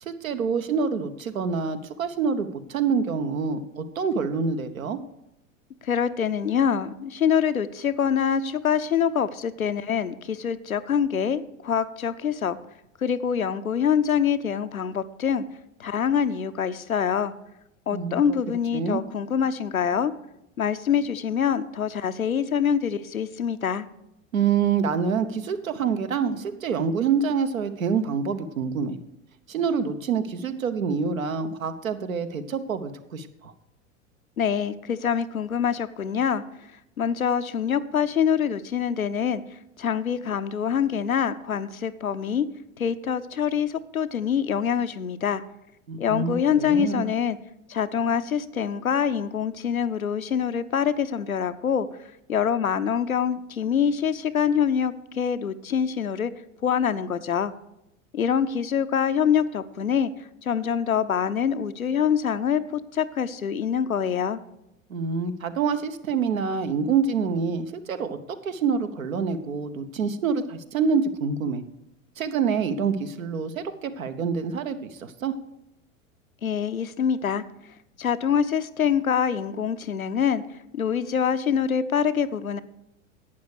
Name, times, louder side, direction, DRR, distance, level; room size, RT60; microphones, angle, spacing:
voice 1, 0.1-5.0 17.9-18.3 18.7-19.0 24.3-29.0 29.5-33.5 45.9-47.0 64.9-68.2 68.4-71.6 72.2-75.3, right 6 dB, 75° right, 10 dB, 1.0 m, -26 dB
voice 2, 5.8-12.6 13.0-15.4 15.8-17.3 17.9-20.1 20.6-23.9 34.4-36.4 37.0-42.5 42.8-45.4 46.0-47.4 47.7-51.9 52.3-56.3 56.6-57.5 58.1-64.4 76.4-77.4 78.0-80.4 80.7-82.6, left 7 dB, 90° left, 11 dB, 0.6 m, -25 dB
11.5 x 8.5 x 4.9 m, 0.83 s
figure-of-eight pair, 85°, 41 cm